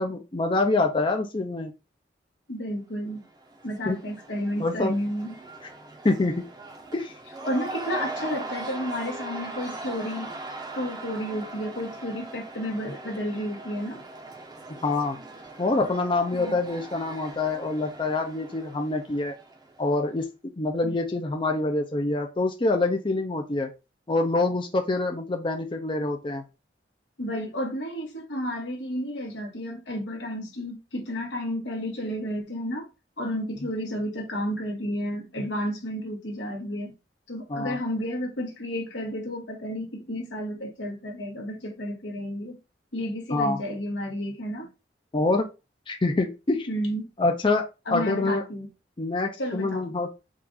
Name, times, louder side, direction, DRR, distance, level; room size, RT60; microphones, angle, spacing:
voice 1, 0.0-1.7 3.9-4.0 4.6-4.9 6.0-6.4 6.9-7.1 14.8-15.2 15.6-19.3 19.8-20.3 20.6-23.7 24.1-26.4 37.5-37.8 43.3-43.6 45.1-45.5 45.9-46.7 47.2-47.6 47.9-48.4 49.0-50.1, left 2 dB, 30° left, 0.5 m, -25 dB
voice 2, 2.5-3.2 3.6-5.3 7.4-10.4 10.7-14.0 16.3-16.6 20.8-20.9 27.2-32.9 33.2-36.9 37.3-42.6 42.9-44.7 46.7-47.1 47.9-48.7 49.4-49.9, equal, 90° left, 1.5 m, -31 dB
Cheering / Crowd, 3.1-20.0, right 2 dB, 25° right, 0.8 m, -40 dB
4.6 x 2.5 x 3.9 m
head